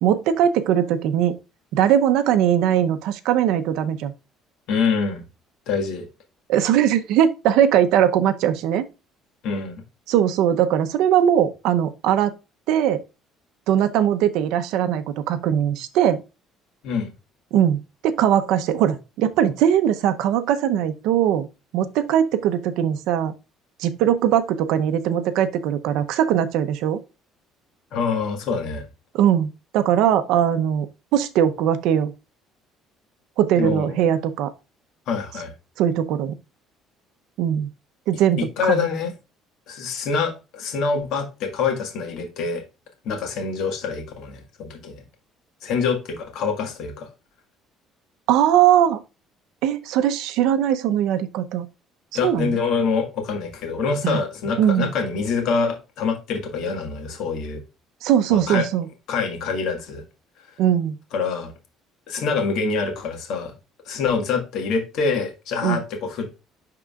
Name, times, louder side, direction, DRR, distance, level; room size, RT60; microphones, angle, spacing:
voice 1, 0.0-1.3 1.7-4.1 6.5-8.9 10.1-12.4 12.7-13.0 13.7-16.2 17.5-17.8 18.0-21.5 21.7-23.3 23.8-27.0 29.1-30.9 31.1-32.1 33.4-34.5 35.8-36.3 37.4-37.7 38.1-38.9 48.3-49.0 49.6-51.7 52.2-52.6 54.0-54.2 54.6-54.9 58.0-58.9 60.6-61.0 65.6-65.8, right 10 dB, 75° right, 0.7 m, -20 dB
voice 2, 4.7-5.2 5.7-6.0 9.4-9.8 16.8-17.1 27.9-28.8 33.5-33.9 35.1-35.5 38.6-39.1 39.7-42.6 43.0-45.0 45.6-47.1 52.1-57.6 58.3-58.7 59.1-60.0 61.1-61.5 62.1-63.5 63.8-66.4, left 5 dB, 65° left, 1.7 m, -25 dB
10.5 x 3.7 x 2.4 m
cardioid pair, 150°, 0 cm